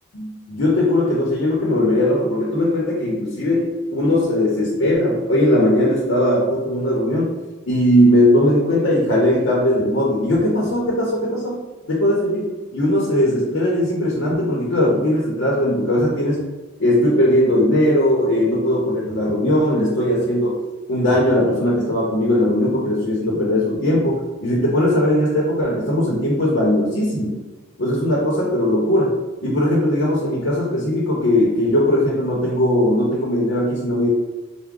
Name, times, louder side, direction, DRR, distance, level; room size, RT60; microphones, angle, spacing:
voice 1, 0.1-7.3 7.7-11.5 11.9-16.5 16.8-20.6 20.9-27.4 27.8-34.1, left 1 dB, 65° left, -4 dB, 0.8 m, -19 dB
4.6 x 2.2 x 3.7 m, 1.2 s
head